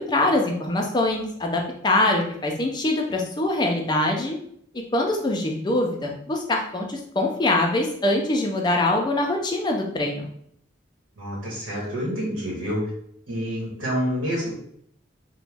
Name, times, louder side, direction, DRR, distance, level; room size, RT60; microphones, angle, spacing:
voice 1, 0.0-4.4 4.9-10.3, left 2 dB, 20° left, 1 dB, 0.4 m, -23 dB
voice 2, 11.2-12.8 13.3-14.6, equal, 85° right, -5 dB, 1.1 m, -28 dB
3.0 x 2.2 x 3.3 m, 0.69 s
head